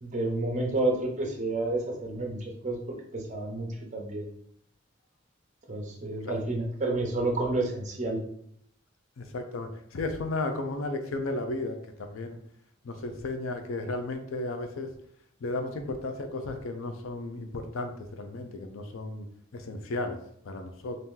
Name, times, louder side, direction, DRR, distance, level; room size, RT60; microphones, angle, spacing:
voice 1, 0.0-4.3 5.7-8.2, right 2 dB, 35° right, 1 dB, 0.7 m, -30 dB
voice 2, 9.2-12.4 12.8-14.9 15.4-19.3 19.5-20.2 20.4-21.0, left 2 dB, 85° left, 6 dB, 0.5 m, -34 dB
2.8 x 2.6 x 3.6 m, 0.69 s
head